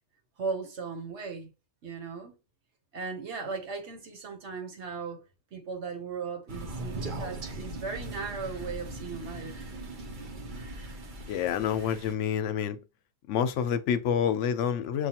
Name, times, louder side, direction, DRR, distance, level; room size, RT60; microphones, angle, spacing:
voice 1, 0.4-1.5 1.8-2.3 2.9-5.2 5.5-9.5, right 4 dB, 70° right, 1.2 m, -37 dB
Crow, 6.5-12.1, right 2 dB, 50° right, 0.8 m, -39 dB
voice 2, 11.3-12.8 13.3-15.1, left 8 dB, 85° left, 0.9 m, -28 dB
6.6 x 2.3 x 2.8 m
omnidirectional pair, 1.2 m